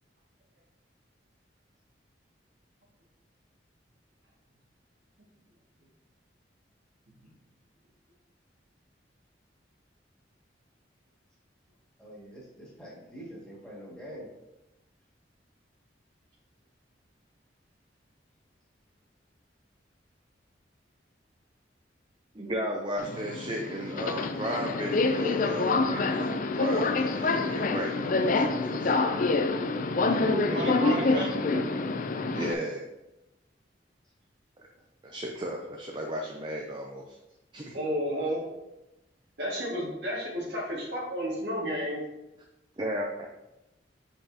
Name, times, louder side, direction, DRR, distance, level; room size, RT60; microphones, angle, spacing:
voice 1, 12.0-14.3, equal, 5° left, -7 dB, 2.0 m, -45 dB
voice 2, 22.4-29.2 30.0-31.6 32.3-32.9 34.6-34.7 35.0-37.2 37.5-37.8 42.8-43.3, right 1 dB, 25° right, 0 dB, 0.6 m, -35 dB
Subway metro underground, 23.0-32.5, left 3 dB, 45° left, 0.4 m, -27 dB
voice 3, 30.5-31.3 37.7-38.4 39.4-42.0, equal, 60° right, -4 dB, 2.1 m, -31 dB
7.0 x 5.3 x 2.8 m, 0.94 s
head